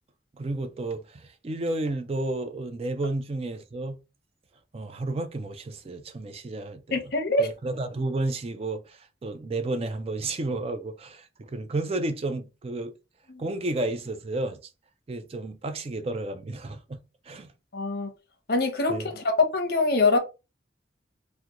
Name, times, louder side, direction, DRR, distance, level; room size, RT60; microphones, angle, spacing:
voice 1, 0.3-4.0 4.7-7.1 7.4-12.9 13.4-14.6 15.1-17.5 18.9-19.1, right 2 dB, 30° right, 0.3 m, -32 dB
voice 2, 6.9-7.5 17.7-18.1 18.5-19.2 19.5-20.2, left 2 dB, 55° left, 0.7 m, -24 dB
3.6 x 2.1 x 2.9 m
head